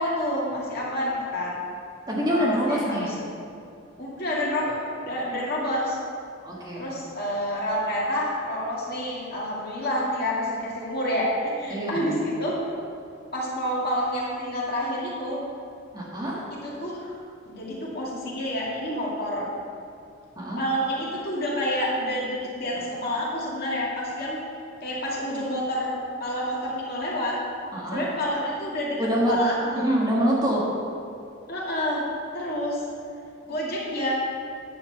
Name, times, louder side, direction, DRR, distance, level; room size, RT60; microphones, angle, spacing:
voice 1, 0.0-1.6 2.3-3.1 4.0-6.0 6.7-12.6 13.3-15.4 16.6-17.1 17.5-19.5 20.6-24.4 24.8-27.4 27.9-29.0 29.3-29.9 31.5-32.0 32.3-32.8 33.4-34.1, equal, 50° left, -5 dB, 2.4 m, -28 dB
voice 2, 2.1-3.1 6.4-6.9 11.7-12.0 15.9-16.4 20.3-20.6 22.7-22.8 27.7-28.0 29.0-29.4 29.7-30.6, equal, 20° right, -5 dB, 1.6 m, -25 dB
9.9 x 5.8 x 6.9 m, 2.5 s
head